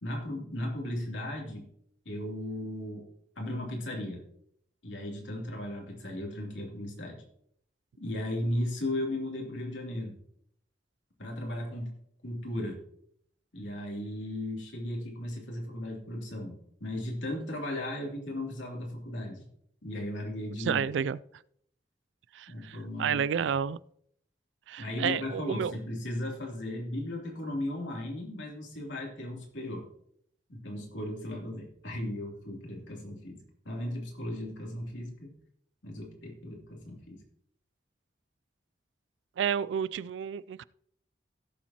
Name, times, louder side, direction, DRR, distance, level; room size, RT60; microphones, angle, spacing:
voice 1, 0.0-1.7 2.0-3.1 3.4-4.2 4.8-7.2 8.0-10.2 11.2-11.9 12.2-12.8 13.5-19.5 19.8-20.8 22.5-23.5 24.8-29.9 30.5-35.3 35.8-37.2, left 1 dB, 90° left, 3.0 m, -36 dB
voice 2, 20.6-21.2 22.3-23.8 24.7-25.8 39.4-40.6, right 7 dB, 85° right, 0.3 m, -30 dB
17.0 x 7.2 x 2.9 m
head